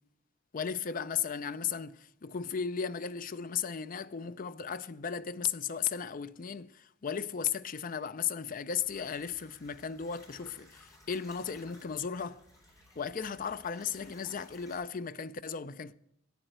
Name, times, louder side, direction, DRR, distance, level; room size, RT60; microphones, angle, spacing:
voice 1, 0.5-12.4 13.0-15.9, left 7 dB, 45° left, 0.5 m, -35 dB
sound 1, 8.8-14.8, left 1 dB, 20° left, 3.9 m, -58 dB
10.5 x 8.9 x 6.7 m
head